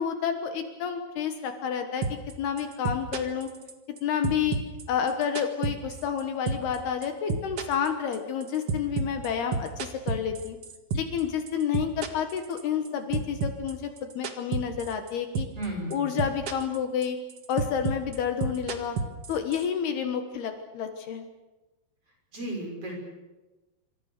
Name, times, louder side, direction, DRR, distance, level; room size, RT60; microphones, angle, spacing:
voice 1, 0.0-2.1 2.4-3.5 4.0-4.6 4.9-10.6 10.9-15.5 15.9-17.2 17.5-19.0 19.3-21.3, left 8 dB, 70° left, 6 dB, 3.2 m, -29 dB
sound 1, 2.0-2.3 2.6-4.0 4.2-6.2 6.5-6.8 7.0-11.2 11.5-12.9 13.1-15.1 15.4-15.7 15.9-16.8 17.0-19.6, right 4 dB, 50° right, 1.8 m, -30 dB
voice 2, 15.5-16.1 22.3-23.0, right 1 dB, 30° right, 1 dB, 7.4 m, -34 dB
27.5 x 25.5 x 6.7 m, 1.1 s
omnidirectional pair, 5.1 m